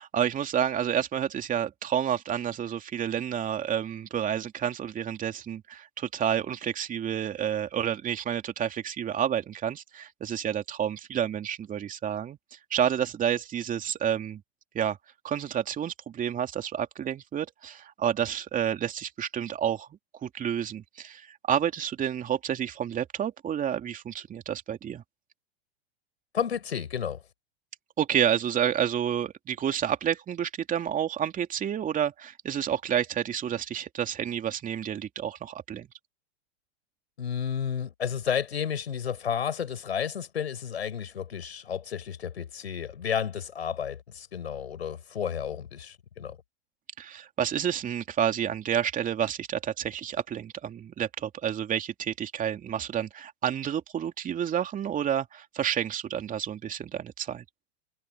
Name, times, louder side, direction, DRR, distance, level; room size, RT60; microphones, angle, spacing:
voice 1, 0.0-12.4 12.7-14.4 14.7-15.0 15.2-19.9 20.2-25.0 28.0-35.9 47.0-57.4, right 9 dB, 25° right, 2.8 m, -29 dB
voice 2, 26.3-27.2 37.2-46.4, left 8 dB, 90° left, 6.2 m, -32 dB
hypercardioid pair, 110°, 31 cm